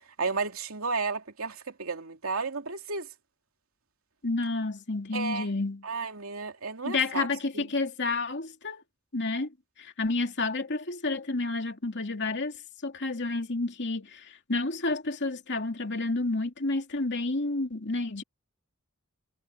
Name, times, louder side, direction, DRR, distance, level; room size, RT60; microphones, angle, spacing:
voice 1, 0.2-3.1 5.1-5.5 5.8-7.3 7.5-7.7, right 4 dB, 85° right, 2.8 m, -32 dB
voice 2, 4.2-5.8 6.8-8.8 9.1-18.2, left 3 dB, 55° left, 2.7 m, -30 dB
head